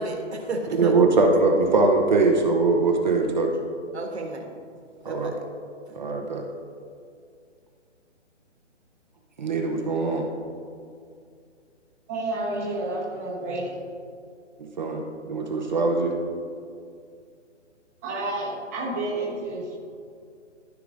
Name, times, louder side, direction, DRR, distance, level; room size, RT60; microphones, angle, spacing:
voice 1, 0.0-1.1 3.9-4.5 5.0-5.3 5.9-6.0, right 2 dB, 60° right, 2 dB, 1.6 m, -33 dB
voice 2, 0.8-3.5 5.0-5.3 5.9-6.4 9.4-10.3 14.6-16.2, right 3 dB, 40° right, 2 dB, 0.8 m, -22 dB
voice 3, 12.1-13.7 18.0-19.8, right 2 dB, 15° right, -5 dB, 1.0 m, -30 dB
13.5 x 4.9 x 2.5 m, 2.3 s
hypercardioid pair, 165°, 37 cm